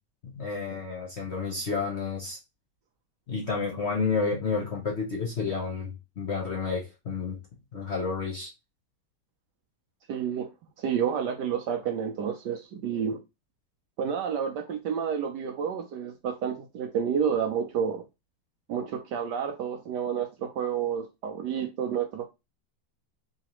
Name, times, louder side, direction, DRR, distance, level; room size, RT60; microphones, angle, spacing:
voice 1, 0.2-2.4 3.3-7.4 7.7-8.5, left 4 dB, 45° left, 0.9 m, -30 dB
voice 2, 10.1-10.5 10.8-13.2 14.0-18.0 18.7-22.2, right 7 dB, 70° right, 1.1 m, -30 dB
3.9 x 3.2 x 2.9 m
omnidirectional pair, 2.2 m